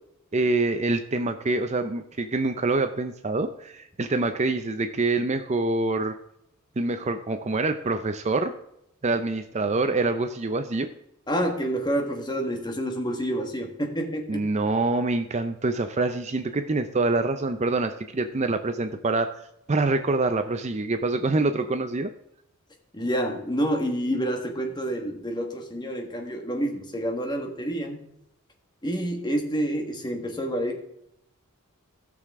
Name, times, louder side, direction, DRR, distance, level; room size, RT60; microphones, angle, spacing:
voice 1, 0.3-6.2 6.8-8.5 9.0-10.9 14.3-19.4 19.7-22.1, right 3 dB, 30° right, 9 dB, 0.5 m, -25 dB
voice 2, 11.3-14.5 22.9-28.0 28.8-30.8, equal, 20° left, 3 dB, 1.5 m, -28 dB
16.5 x 6.7 x 3.6 m, 0.79 s
head